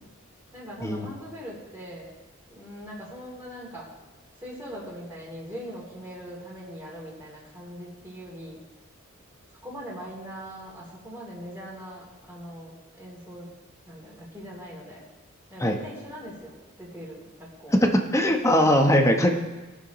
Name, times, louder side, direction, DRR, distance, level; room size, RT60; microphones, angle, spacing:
voice 1, 0.5-2.1 2.5-3.9 4.4-8.6 9.6-13.5 13.8-15.1 15.5-17.8, equal, 10° right, -6 dB, 3.0 m, -41 dB
voice 2, 18.1-19.3, equal, 15° left, 3 dB, 1.0 m, -20 dB
21.0 x 7.4 x 3.1 m, 1.1 s
head